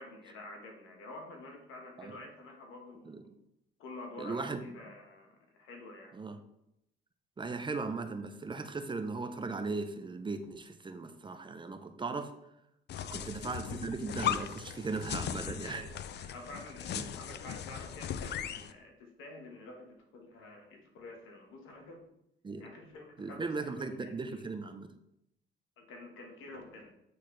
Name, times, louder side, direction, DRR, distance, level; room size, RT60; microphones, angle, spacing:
voice 1, 0.0-3.3 3.8-6.1 12.9-13.2 15.5-22.0 22.6-24.4 25.8-27.0, left 2 dB, 90° left, 2 dB, 1.3 m, -49 dB
voice 2, 4.2-4.6 6.1-6.4 7.4-12.3 13.1-15.8 17.0-17.1 22.4-22.7 23.2-24.9, right 3 dB, 25° right, 8 dB, 0.6 m, -37 dB
sound 1, 12.9-18.7, left 9 dB, 60° left, 0.4 m, -38 dB
8.6 x 4.0 x 3.2 m, 0.82 s
cardioid pair, 90°, 20 cm